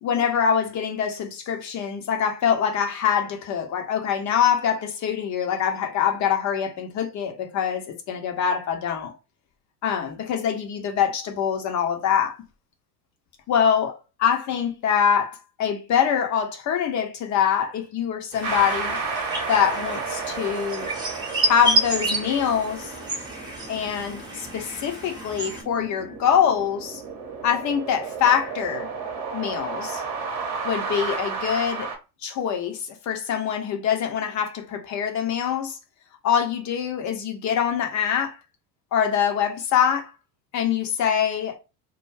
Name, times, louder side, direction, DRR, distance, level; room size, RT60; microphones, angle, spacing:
voice 1, 0.0-9.1 9.8-12.4 13.5-19.0 19.5-20.9 21.4-22.9 23.7-27.0 27.4-28.9 29.3-30.0 30.6-31.9 32.2-35.8 36.2-38.4 38.9-40.1 40.5-41.6, left 8 dB, 40° left, 0.8 m, -24 dB
sound 1, 18.3-25.6, right 1 dB, 10° right, 0.9 m, -29 dB
sound 2, 18.4-32.0, right 5 dB, 35° right, 0.9 m, -33 dB
2.3 x 2.2 x 3.2 m
hypercardioid pair, 80°, 46 cm